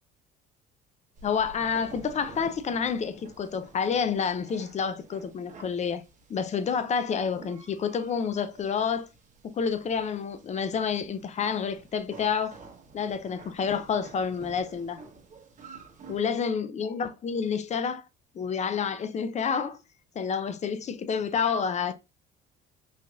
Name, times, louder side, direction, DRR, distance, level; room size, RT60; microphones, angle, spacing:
voice 1, 1.2-6.0 6.3-9.1 9.4-12.6 12.9-15.0 16.1-18.1 18.3-19.8 20.2-21.9, left 6 dB, 35° left, 0.5 m, -29 dB
sound 1, 1.2-16.2, right 4 dB, 40° right, 1.0 m, -51 dB
4.0 x 2.9 x 2.3 m
supercardioid pair, 85°, 20 cm